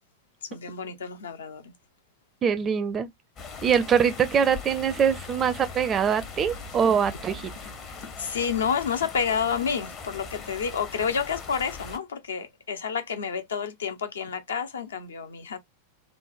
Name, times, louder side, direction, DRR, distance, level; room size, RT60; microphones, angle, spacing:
voice 1, 0.5-1.7 8.2-15.6, left 6 dB, 65° left, 0.5 m, -29 dB
voice 2, 2.4-3.1 3.6-7.5, right 7 dB, 25° right, 0.4 m, -23 dB
sound 1, 3.4-12.0, left 4 dB, 30° left, 0.6 m, -40 dB
3.2 x 2.0 x 2.4 m
figure-of-eight pair, 90°, 0 cm